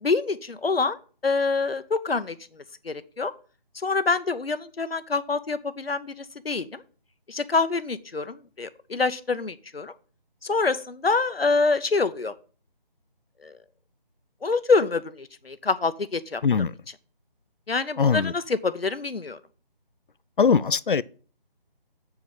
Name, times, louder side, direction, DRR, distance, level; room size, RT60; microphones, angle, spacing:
voice 1, 0.0-1.0 1.2-2.4 2.8-3.3 3.8-6.8 7.3-9.9 10.4-12.3 13.4-13.5 14.4-16.4 17.7-19.4, left 4 dB, 90° left, 0.9 m, -26 dB
voice 2, 18.0-18.3 20.4-21.0, left 6 dB, 60° left, 0.5 m, -21 dB
7.9 x 4.8 x 7.3 m
figure-of-eight pair, 160°, 29 cm